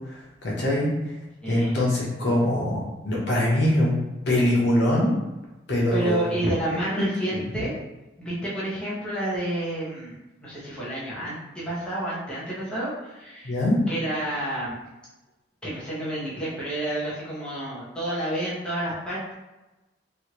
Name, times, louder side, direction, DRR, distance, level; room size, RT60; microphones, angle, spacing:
voice 1, 0.1-0.9 1.5-4.0 4.3-5.1 5.7-6.3 7.3-7.4 13.4-13.8, left 1 dB, 65° left, -5 dB, 0.9 m, -23 dB
voice 2, 1.4-1.8 5.9-7.7 8.2-10.1 10.4-13.5 13.9-14.8 15.6-19.3, right 1 dB, 5° left, -9 dB, 0.9 m, -29 dB
3.1 x 2.5 x 2.9 m, 1.0 s
head